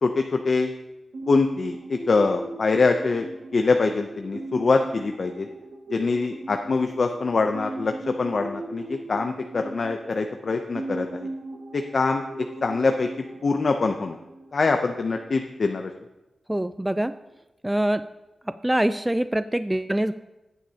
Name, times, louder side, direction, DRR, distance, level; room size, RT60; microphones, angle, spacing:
voice 1, 0.0-0.7 1.3-3.3 3.5-5.5 5.9-11.3 11.7-13.1 13.4-14.2 14.5-15.9, left 4 dB, 50° left, 5 dB, 0.6 m, -24 dB
sound 1, 1.1-15.5, right 2 dB, 80° right, 2.0 m, -39 dB
voice 2, 16.5-17.1 17.6-18.0 18.6-20.1, right 1 dB, 10° right, 11 dB, 0.3 m, -24 dB
16.5 x 9.2 x 2.8 m, 0.99 s
wide cardioid pair, 120°, 0 cm